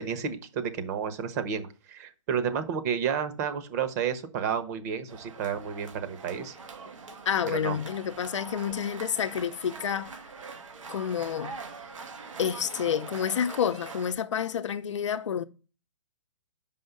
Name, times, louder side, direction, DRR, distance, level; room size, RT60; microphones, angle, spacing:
voice 1, 0.0-6.5 7.5-7.8, right 7 dB, 35° right, 1.1 m, -31 dB
sound 1, 5.1-14.1, right 4 dB, 90° right, 2.1 m, -43 dB
voice 2, 7.3-10.1 10.9-11.5 12.4-15.4, left 8 dB, 70° left, 0.7 m, -29 dB
5.6 x 5.4 x 6.7 m
hypercardioid pair, 160°, 16 cm